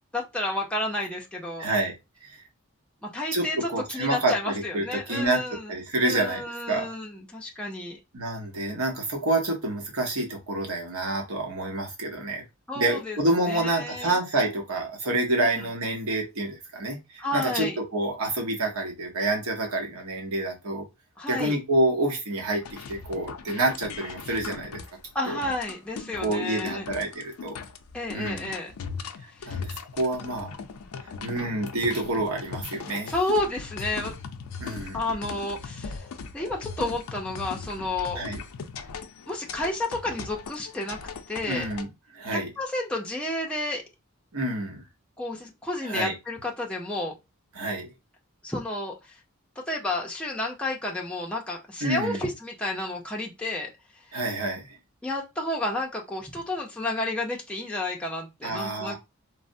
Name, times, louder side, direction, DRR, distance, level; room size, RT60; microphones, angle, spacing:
voice 1, 0.1-1.7 3.0-5.7 6.0-8.0 12.7-14.2 15.4-15.7 17.2-17.8 21.2-21.6 25.1-26.9 27.9-28.7 29.4-29.6 33.1-34.1 34.9-36.1 36.3-38.2 39.3-41.0 41.3-41.7 42.3-43.8 45.2-47.1 48.4-49.2 49.7-53.7 55.0-58.9, left 2 dB, 5° left, -2 dB, 0.5 m, -31 dB
voice 2, 1.6-1.9 2.2-2.4 3.3-5.4 5.7-6.4 6.7-6.9 8.1-12.4 12.8-20.8 21.3-24.8 25.3-25.4 26.2-27.6 28.1-28.5 29.5-30.6 31.2-33.1 34.6-35.0 38.2-38.4 41.5-41.9 42.1-42.5 44.3-44.8 45.8-46.1 47.6-47.9 51.8-52.2 54.1-54.7 58.4-58.9, right 2 dB, 75° right, 2 dB, 0.9 m, -28 dB
sound 1, 22.6-41.8, left 5 dB, 75° left, 0.4 m, -39 dB
3.2 x 2.0 x 2.5 m, 0.24 s
head